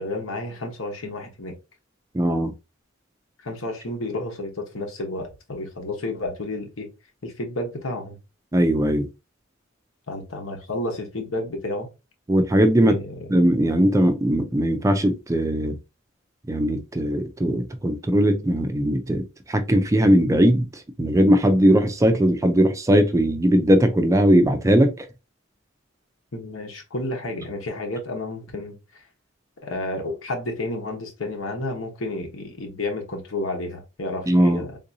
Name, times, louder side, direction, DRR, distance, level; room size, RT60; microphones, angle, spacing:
voice 1, 0.0-1.5 3.4-6.9 7.2-8.2 10.1-11.9 12.8-13.4 26.3-29.0 29.6-34.8, left 2 dB, 75° left, 1.1 m, -31 dB
voice 2, 2.1-2.5 8.5-9.1 12.3-13.0 13.3-15.7 16.5-19.2 19.5-20.7 21.0-25.1 34.3-34.6, equal, 15° right, 0.4 m, -19 dB
3.6 x 2.6 x 2.7 m
head